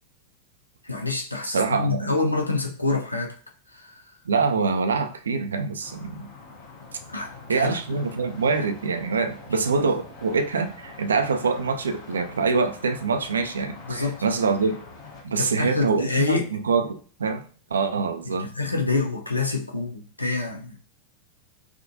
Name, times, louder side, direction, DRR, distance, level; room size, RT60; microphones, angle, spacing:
voice 1, 0.8-3.3 3.7-4.0 7.1-7.8 9.8-9.9 13.9-14.2 15.4-16.5 18.3-20.8, left 3 dB, 85° left, 2 dB, 0.5 m, -27 dB
voice 2, 1.5-2.1 4.3-6.3 7.5-14.7 15.2-17.4 17.7-18.5, right 4 dB, 70° right, 8 dB, 0.4 m, -25 dB
sound 1, 5.8-15.2, left 3 dB, 40° left, 0.9 m, -44 dB
3.5 x 2.3 x 2.6 m, 0.41 s
figure-of-eight pair, 90°, 0 cm